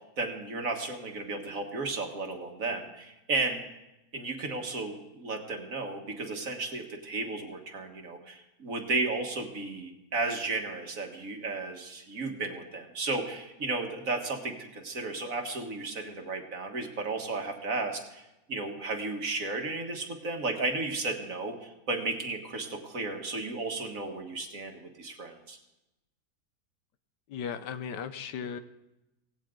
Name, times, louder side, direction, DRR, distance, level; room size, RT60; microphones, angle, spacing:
voice 1, 0.2-3.6 4.1-25.6, right 3 dB, 55° right, 3 dB, 2.0 m, -34 dB
voice 2, 27.3-28.6, left 7 dB, 90° left, 11 dB, 1.5 m, -36 dB
17.5 x 16.5 x 3.8 m, 0.95 s
omnidirectional pair, 1.8 m